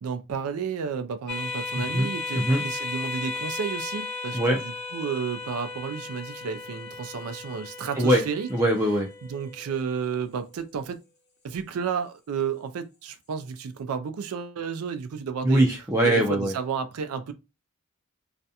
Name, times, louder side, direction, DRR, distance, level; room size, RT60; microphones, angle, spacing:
voice 1, 0.0-8.5 9.2-11.0 11.4-15.6 16.0-17.3, right 6 dB, 85° right, 0.4 m, -32 dB
sound 1, 1.3-10.2, left 3 dB, 50° left, 0.8 m, -36 dB
voice 2, 1.8-2.1 2.4-2.6 4.3-4.6 8.0-8.2 8.5-9.1 15.4-16.5, right 1 dB, 15° right, 0.4 m, -22 dB
2.4 x 2.1 x 2.7 m
head